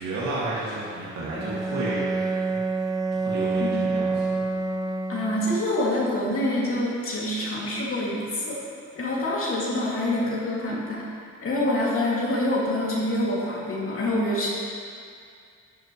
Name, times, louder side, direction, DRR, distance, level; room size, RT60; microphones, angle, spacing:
voice 1, 0.0-2.6 3.2-4.4, right 2 dB, 65° right, -8 dB, 2.5 m, -32 dB
Bowed string instrument, 1.3-5.7, right 3 dB, 10° right, 0.5 m, -27 dB
voice 2, 5.1-8.6 9.0-11.0 11.4-14.5, left 1 dB, 45° left, -6 dB, 2.7 m, -26 dB
11.5 x 11.5 x 3.3 m, 2.3 s
cardioid pair, 90°, 30 cm